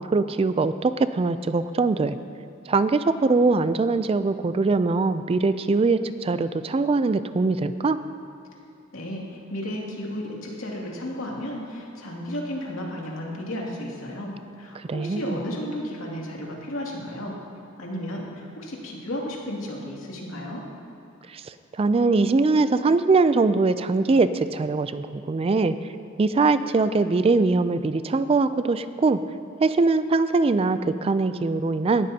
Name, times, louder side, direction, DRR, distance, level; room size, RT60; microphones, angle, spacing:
voice 1, 0.0-2.2 2.7-8.0 14.8-15.4 21.3-25.8 26.2-29.2 29.6-32.1, right 3 dB, 30° right, 12 dB, 0.3 m, -22 dB
voice 2, 8.9-17.4 17.8-20.6, equal, 85° left, -3 dB, 2.5 m, -33 dB
18.5 x 13.0 x 2.8 m, 2.6 s
head